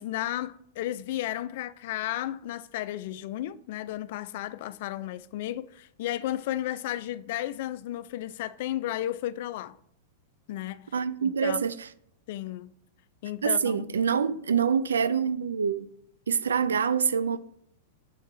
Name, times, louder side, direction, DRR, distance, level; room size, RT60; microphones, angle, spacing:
voice 1, 0.0-9.8 10.5-10.9 11.2-11.6 12.3-12.7 13.2-14.0, left 13 dB, 55° left, 0.3 m, -33 dB
voice 2, 10.9-11.9 13.4-15.9 16.3-17.4, right 6 dB, 80° right, 0.3 m, -26 dB
7.1 x 4.3 x 3.3 m
hypercardioid pair, 100°, 0 cm